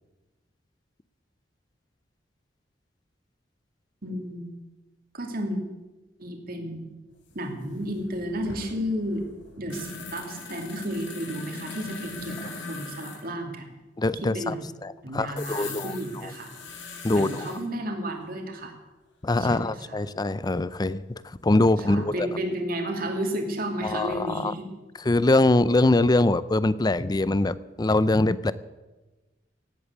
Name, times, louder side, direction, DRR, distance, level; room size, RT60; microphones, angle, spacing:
voice 1, 4.0-4.5 5.1-5.6 6.2-7.0 7.3-9.2 9.6-13.7 14.2-14.6 15.0-16.5 17.1-18.7 19.4-20.0 21.9-24.6, equal, 55° right, 4 dB, 2.7 m, -32 dB
sound 1, 7.3-7.4 7.6-13.3 15.4-17.6 19.8-19.9 21.4-22.1 22.4-22.5, left 3 dB, 85° left, 3.2 m, -40 dB
voice 2, 14.0-14.5 14.8-16.0 16.2-16.3 17.0-17.5 19.2-22.3 23.8-24.5 25.1-28.5, left 2 dB, 20° left, 17 dB, 0.5 m, -23 dB
17.0 x 8.5 x 8.2 m, 1.1 s
head